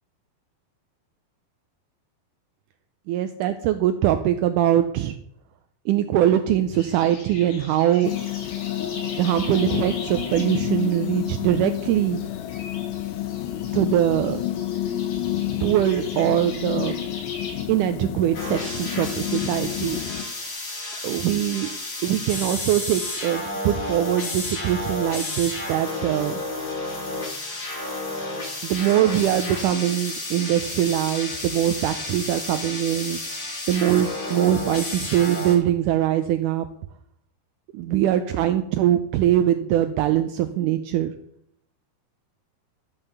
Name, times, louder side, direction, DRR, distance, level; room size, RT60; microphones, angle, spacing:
voice 1, 3.1-5.2 5.9-8.1 9.2-12.2 13.7-14.4 15.6-16.9 17.7-20.0 21.0-21.7 22.0-26.4 28.6-33.2 33.7-36.7 37.7-41.1, right 11 dB, 85° right, 9 dB, 1.9 m, -22 dB
sound 1, 6.7-17.6, left 3 dB, 70° left, 3.8 m, -41 dB
sound 2, 8.0-20.2, left 13 dB, 90° left, 2.5 m, -29 dB
sound 3, 18.3-35.6, left 2 dB, 40° left, 2.9 m, -31 dB
12.0 x 5.4 x 6.9 m, 0.70 s
omnidirectional pair, 4.1 m